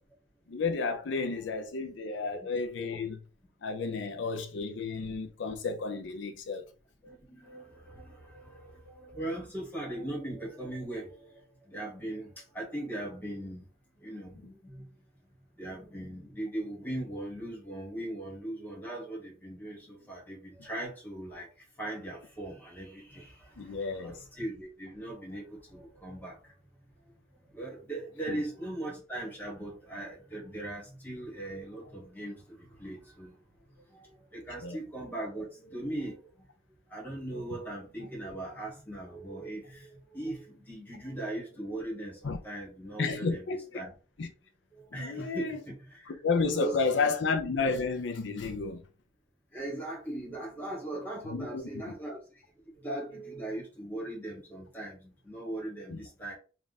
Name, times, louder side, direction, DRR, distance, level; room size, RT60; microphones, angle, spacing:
voice 1, 0.5-3.2 3.6-6.7 23.6-24.2 28.3-28.4 34.6-34.8 42.2-42.4 43.0-43.6 44.2-44.3 44.9-45.6 46.2-48.8 51.3-51.7 55.9-56.0, left 4 dB, 70° left, 0.5 m, -31 dB
voice 2, 7.0-13.7 14.0-14.9 15.6-21.5 21.8-26.5 27.5-33.4 33.9-36.5 36.9-43.5 43.7-43.9 44.7-47.1 49.5-52.2 52.8-56.4, right 1 dB, 10° left, 1.3 m, -39 dB
3.4 x 2.4 x 4.0 m
head